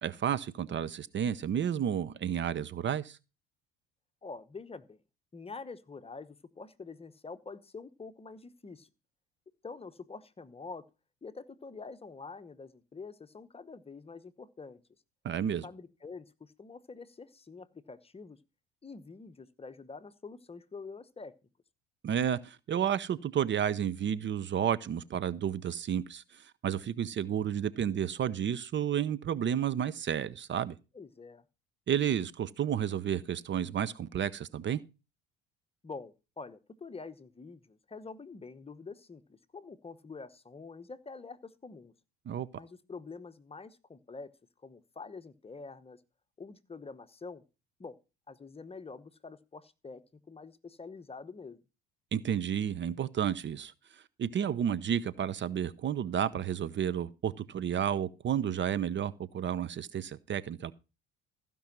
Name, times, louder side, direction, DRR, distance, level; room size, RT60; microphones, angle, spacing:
voice 1, 0.0-3.2 15.2-15.6 22.0-30.8 31.9-34.8 42.3-42.5 52.1-60.7, right 9 dB, 40° right, 0.8 m, -31 dB
voice 2, 4.2-5.0 5.3-8.9 9.6-10.9 11.2-14.8 15.6-18.4 18.8-21.4 30.9-31.4 35.8-41.9 42.5-44.3 44.6-46.0 46.4-47.4 47.8-48.0 48.3-51.6, left 4 dB, 20° left, 1.0 m, -46 dB
15.0 x 5.4 x 6.0 m
supercardioid pair, 80°, 29 cm